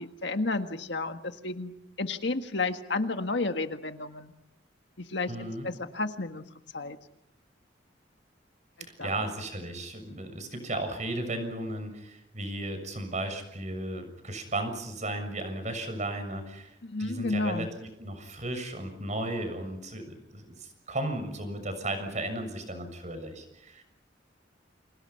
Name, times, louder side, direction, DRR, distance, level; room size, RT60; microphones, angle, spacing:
voice 1, 0.0-4.3 5.0-5.3 5.6-6.4 6.7-7.0 9.0-9.1 16.8-17.7, left 3 dB, 65° left, 7 dB, 1.7 m, -31 dB
voice 2, 5.3-5.7 8.8-23.8, right 1 dB, 40° right, 8 dB, 6.8 m, -35 dB
29.5 x 27.0 x 5.9 m, 0.82 s
head